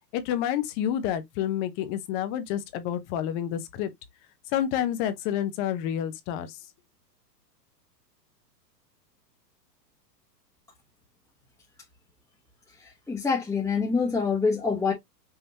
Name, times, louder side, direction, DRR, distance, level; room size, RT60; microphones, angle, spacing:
voice 1, 0.1-3.9 4.5-6.6, left 10 dB, 30° left, 0.6 m, -29 dB
voice 2, 13.1-14.9, left 5 dB, 5° left, 1.0 m, -25 dB
5.7 x 2.8 x 2.7 m
hypercardioid pair, 130°, 50 cm